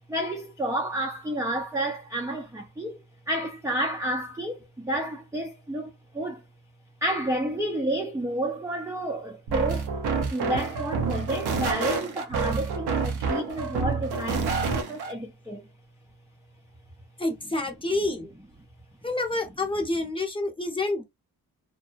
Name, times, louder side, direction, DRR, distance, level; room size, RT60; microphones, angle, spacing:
voice 1, 0.1-6.4 7.0-9.9 10.3-15.6, right 1 dB, 10° right, 0.5 m, -30 dB
sound 1, 9.5-15.1, right 4 dB, 85° right, 0.7 m, -28 dB
voice 2, 17.2-18.3 19.0-21.0, left 2 dB, 15° left, 0.9 m, -28 dB
2.7 x 2.1 x 2.5 m
cardioid pair, 80°, 38 cm